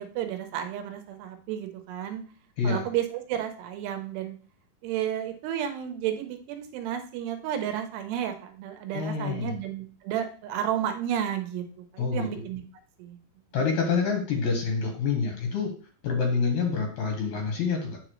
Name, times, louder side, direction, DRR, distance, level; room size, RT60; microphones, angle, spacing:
voice 1, 0.0-2.2 2.6-4.4 4.8-11.6 11.9-12.6 13.0-13.2, right 10 dB, 85° right, 6 dB, 3.0 m, -32 dB
voice 2, 8.9-9.6 12.0-12.3 13.5-15.7 16.0-18.0, left 5 dB, 65° left, 1 dB, 2.1 m, -27 dB
8.6 x 5.0 x 3.1 m, 0.43 s
omnidirectional pair, 4.7 m